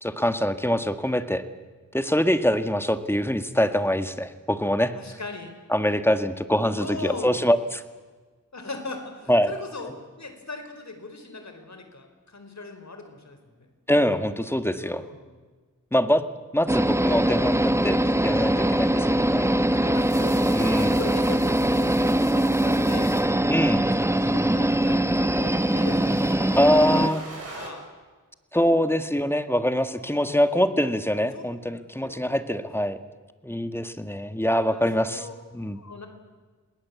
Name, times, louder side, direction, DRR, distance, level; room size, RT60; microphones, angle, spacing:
voice 1, 0.0-1.4 1.9-4.9 5.7-7.8 9.3-9.5 13.9-15.0 15.9-16.2 16.5-19.5 20.5-21.0 23.5-23.8 26.6-27.2 28.5-33.0 33.4-35.3 35.5-35.8, equal, 5° left, 10 dB, 1.7 m, -24 dB
voice 2, 4.9-5.5 6.8-7.4 8.5-13.7 14.8-15.4 19.1-23.1 23.9-26.5 26.7-27.1 27.5-27.8 29.9-30.6 31.3-31.4 31.7-32.3 34.7-35.4 35.7-36.1, left 3 dB, 55° left, 6 dB, 4.6 m, -39 dB
sound 1, 16.7-27.1, right 1 dB, 10° right, 1.0 m, -22 dB
sound 2, 19.9-23.2 24.3-27.7, right 2 dB, 45° right, 7.3 m, -43 dB
28.0 x 20.0 x 8.5 m, 1.4 s
wide cardioid pair, 60°, 32 cm